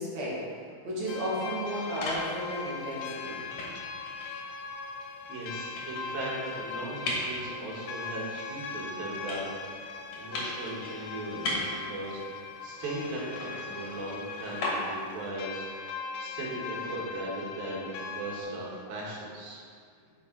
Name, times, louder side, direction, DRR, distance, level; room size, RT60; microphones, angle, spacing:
voice 1, 0.0-3.4, equal, 55° right, -7 dB, 3.2 m, -34 dB
sound 1, 1.1-18.4, left 5 dB, 80° left, 1.7 m, -40 dB
sound 2, 1.4-15.3, left 1 dB, 60° left, 2.9 m, -40 dB
voice 2, 5.3-9.4 10.2-15.9 16.2-19.6, right 2 dB, 90° right, -4 dB, 3.5 m, -38 dB
10.5 x 6.4 x 4.0 m, 2.1 s
omnidirectional pair, 4.0 m